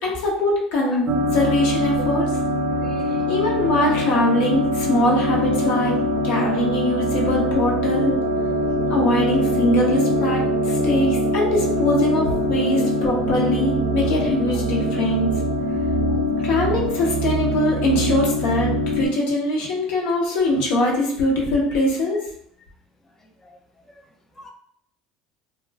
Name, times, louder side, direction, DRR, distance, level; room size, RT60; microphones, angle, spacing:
voice 1, 0.0-2.3 3.3-8.1 8.9-15.3 16.4-22.2, left 1 dB, 75° left, -2 dB, 0.9 m, -22 dB
sound 1, 1.1-19.1, equal, 50° right, 0.4 m, -23 dB
voice 2, 2.8-3.3 3.8-3.9 16.1-16.2 23.4-23.5 24.4-24.5, left 1 dB, 15° left, 1 dB, 0.4 m, -40 dB
2.3 x 2.1 x 3.3 m, 0.66 s
supercardioid pair, 100°, 2 cm